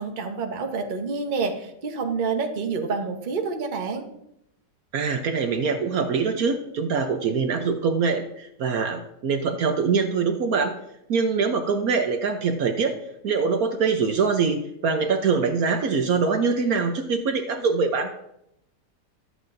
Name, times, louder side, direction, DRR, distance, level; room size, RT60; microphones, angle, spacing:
voice 1, 0.0-4.1, right 4 dB, 35° right, 3 dB, 0.9 m, -28 dB
voice 2, 4.9-10.7 11.1-12.9 13.2-14.6 14.8-18.1, right 5 dB, 65° right, 5 dB, 1.1 m, -23 dB
12.5 x 8.0 x 2.6 m, 0.79 s
omnidirectional pair, 1.8 m